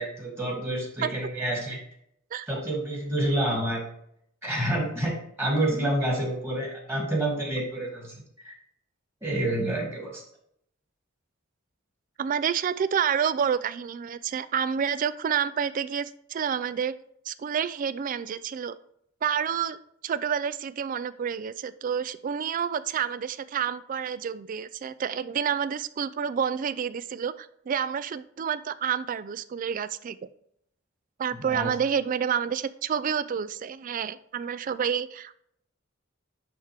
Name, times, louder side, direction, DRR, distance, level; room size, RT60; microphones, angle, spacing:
voice 1, 0.0-1.8 2.5-3.8 4.4-8.1 8.4-8.5 9.2-10.2 31.3-31.7, right 1 dB, 10° right, -2 dB, 2.4 m, -28 dB
voice 2, 12.2-16.9 17.3-18.8 19.2-19.8 20.0-30.2 31.2-35.3, right 7 dB, 40° right, 15 dB, 0.3 m, -29 dB
11.0 x 3.6 x 3.4 m, 0.70 s
head